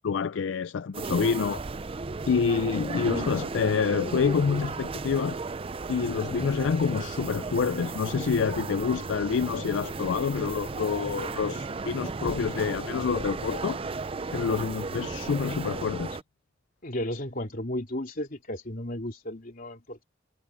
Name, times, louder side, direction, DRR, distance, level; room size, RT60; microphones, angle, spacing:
voice 1, 0.0-1.6 2.3-5.4 5.9-13.8 14.3-16.2, left 6 dB, 75° left, 0.4 m, -27 dB
sound 1, 0.9-16.2, right 3 dB, 30° right, 0.5 m, -35 dB
sound 2, 7.9-15.5, right 2 dB, 85° right, 3.7 m, -50 dB
voice 2, 16.8-20.0, left 1 dB, 50° left, 3.5 m, -34 dB
head